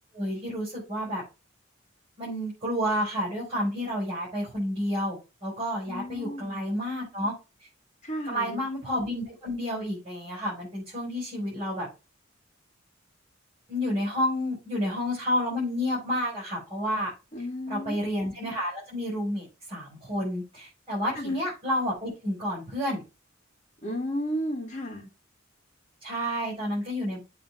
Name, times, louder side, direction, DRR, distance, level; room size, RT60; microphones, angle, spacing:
voice 1, 0.1-1.2 2.2-7.3 8.3-11.9 13.7-17.1 17.7-23.0 26.0-27.2, equal, 30° right, 5.1 m, -30 dB
voice 2, 5.9-6.6 8.0-8.6 17.3-18.0 21.2-21.4 23.8-25.1, equal, 35° left, 2.1 m, -33 dB
7.8 x 3.7 x 5.6 m
head